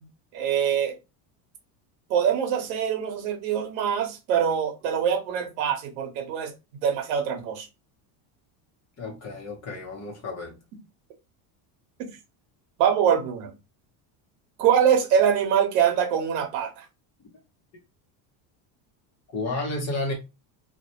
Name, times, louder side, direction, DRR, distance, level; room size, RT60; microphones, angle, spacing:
voice 1, 0.3-0.9 2.1-6.5 6.8-7.7 12.0-12.1 12.8-13.5 14.6-16.9, right 8 dB, 80° right, 0.9 m, -24 dB
voice 2, 9.0-10.6 19.3-20.1, left 2 dB, 35° left, 0.7 m, -31 dB
2.3 x 2.1 x 2.7 m
cardioid pair, 130°, 49 cm